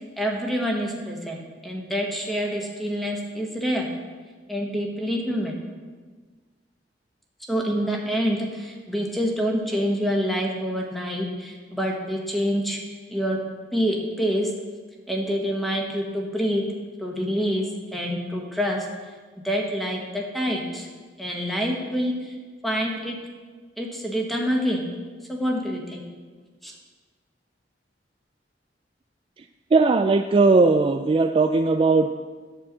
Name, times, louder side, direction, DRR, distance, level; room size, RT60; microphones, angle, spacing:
voice 1, 0.2-3.9 4.5-5.5 7.5-12.8 13.1-13.4 13.7-14.5 15.1-16.6 17.0-17.7 17.9-18.8 19.4-20.9 21.2-22.4 22.6-23.1 23.8-24.9 25.3-26.0 26.6-26.7, equal, ahead, -1 dB, 1.4 m, -26 dB
voice 2, 29.7-32.1, right 3 dB, 30° right, 6 dB, 0.3 m, -18 dB
11.0 x 4.5 x 7.4 m, 1.4 s
head